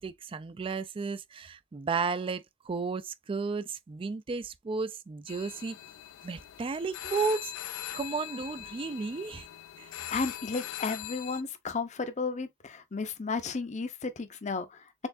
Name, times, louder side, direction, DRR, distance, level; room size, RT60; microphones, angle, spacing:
voice 1, 0.0-5.8 6.2-7.5 7.9-9.5 9.8-9.9, right 4 dB, 25° right, 0.3 m, -33 dB
sound 1, 5.3-11.4, left 13 dB, 90° left, 0.5 m, -41 dB
voice 2, 10.1-14.8, left 4 dB, 35° left, 0.6 m, -33 dB
4.3 x 3.5 x 2.5 m
head